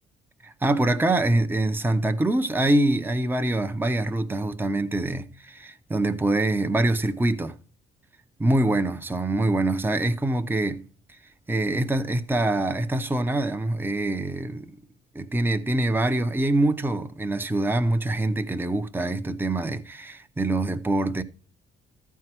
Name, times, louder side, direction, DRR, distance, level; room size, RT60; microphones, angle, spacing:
voice 1, 0.4-7.6 8.4-10.8 11.5-14.8 15.1-21.2, right 2 dB, 10° right, 0.8 m, -24 dB
14.0 x 4.7 x 6.0 m
cardioid pair, 90°, 20 cm